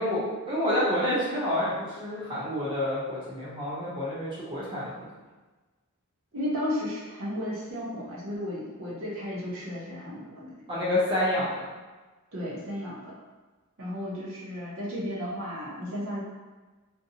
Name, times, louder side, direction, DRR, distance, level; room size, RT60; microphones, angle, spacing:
voice 1, 0.0-4.9 10.7-11.7, left 1 dB, 20° right, -8 dB, 0.8 m, -28 dB
voice 2, 6.3-10.5 12.3-13.1 13.8-16.2, equal, 60° right, -6 dB, 0.8 m, -34 dB
2.5 x 2.2 x 2.7 m, 1.3 s
head